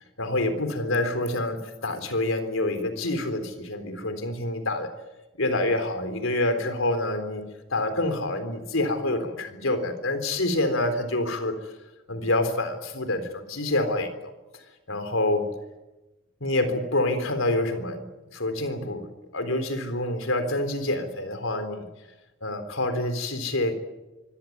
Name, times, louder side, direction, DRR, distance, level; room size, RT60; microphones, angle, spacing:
voice 1, 0.2-4.9 5.4-7.5 7.7-11.6 12.1-14.3 14.9-15.5 16.4-18.1 18.3-19.1 19.3-21.9 22.4-23.7, left 1 dB, 85° left, 9 dB, 3.8 m, -27 dB
25.0 x 17.0 x 9.6 m, 1.0 s
head